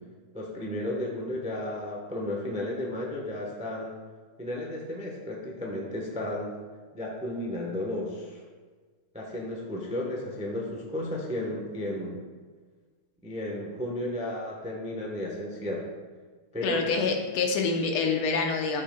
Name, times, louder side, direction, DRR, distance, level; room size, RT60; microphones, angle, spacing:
voice 1, 0.3-4.0 4.4-6.5 6.9-8.4 9.1-12.2 13.2-15.9 16.5-16.8, left 1 dB, 10° right, -1 dB, 0.4 m, -33 dB
voice 2, 16.6-18.8, left 4 dB, 90° left, 3 dB, 1.8 m, -26 dB
13.0 x 5.5 x 2.3 m, 1.4 s
omnidirectional pair, 2.3 m